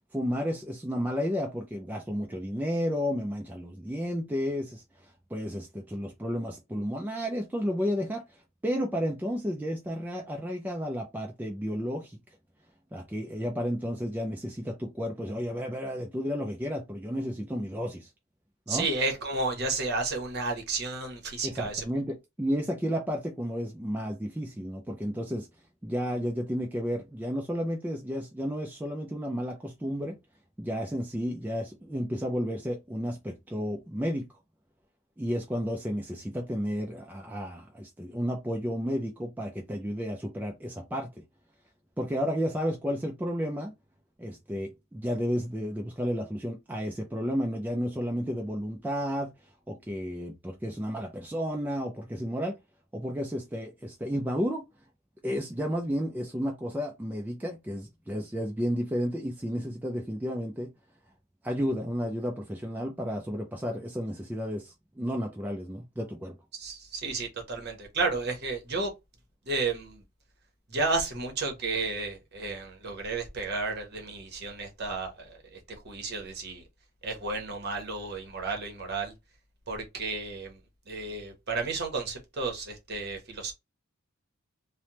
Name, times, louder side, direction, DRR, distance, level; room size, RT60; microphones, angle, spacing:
voice 1, 0.1-4.8 5.3-8.2 8.6-12.2 12.9-18.1 18.7-18.9 21.4-25.5 25.8-30.2 30.6-34.3 35.2-41.1 42.0-43.7 44.2-49.3 49.7-52.6 52.9-54.6 55.2-60.7 61.4-66.3, equal, 10° right, 0.3 m, -32 dB
voice 2, 18.7-21.8 66.5-68.9 69.5-70.0 70.7-76.6 77.0-79.1 79.7-80.6 80.9-83.5, right 3 dB, 50° right, 0.9 m, -32 dB
3.3 x 2.1 x 2.8 m
head